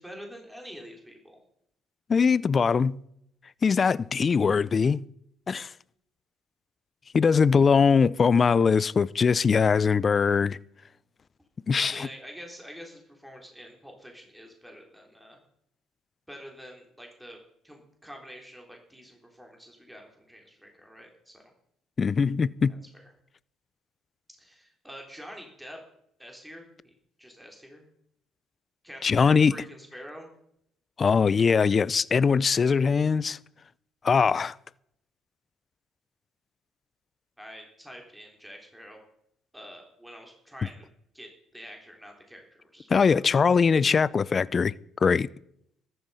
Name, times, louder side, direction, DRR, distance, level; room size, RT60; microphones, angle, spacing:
voice 1, 0.0-1.4 11.8-15.4 16.3-17.4 17.6-21.4 22.9-23.0 24.4-25.8 26.2-27.8 28.8-30.3 37.4-39.0 39.5-40.9 41.1-43.2, equal, 5° right, 3.6 m, -46 dB
voice 2, 2.1-3.0 3.6-5.0 5.5-5.7 7.1-10.6 11.7-12.1 22.0-22.7 29.0-29.5 31.0-33.4 34.0-34.5 42.9-44.7 45.0-45.3, left 5 dB, 35° left, 0.5 m, -21 dB
14.0 x 11.0 x 5.6 m
cardioid pair, 100°, 0 cm